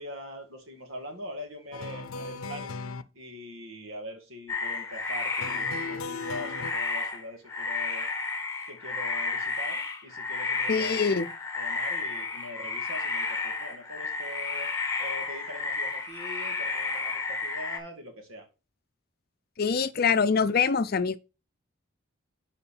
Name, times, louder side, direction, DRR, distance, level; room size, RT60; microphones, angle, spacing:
voice 1, 0.0-2.8 3.1-8.1 8.7-11.0 11.6-14.7 15.0-18.5, equal, 80° right, 2.3 m, -42 dB
sound 1, 1.7-3.0 5.4-6.7, left 4 dB, 90° left, 0.6 m, -37 dB
sound 2, 4.5-17.8, left 4 dB, 15° left, 1.4 m, -32 dB
voice 2, 10.7-11.3 19.6-21.2, left 5 dB, 45° left, 0.5 m, -24 dB
5.8 x 4.9 x 6.3 m
head